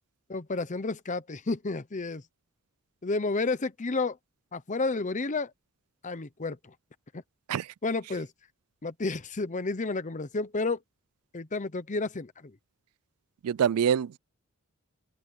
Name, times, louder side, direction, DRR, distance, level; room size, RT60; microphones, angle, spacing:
voice 1, 0.3-2.2 3.0-4.2 4.5-5.5 6.0-6.7 7.1-7.2 7.8-8.3 8.8-10.8 11.3-12.5, left 3 dB, 35° left, 0.8 m, -31 dB
voice 2, 13.4-14.2, right 8 dB, 90° right, 0.4 m, -25 dB
head